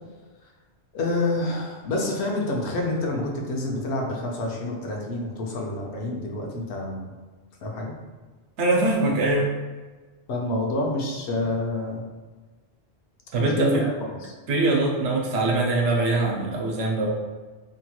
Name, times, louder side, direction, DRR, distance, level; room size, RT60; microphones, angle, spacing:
voice 1, 0.9-7.1 7.6-7.9 10.3-12.0 13.4-14.3 15.0-15.1, left 2 dB, 75° left, 0 dB, 0.8 m, -28 dB
voice 2, 8.6-9.5 13.3-13.8 14.5-17.1, right 2 dB, 85° right, -1 dB, 0.9 m, -22 dB
2.8 x 2.8 x 2.2 m, 1.3 s
omnidirectional pair, 1.2 m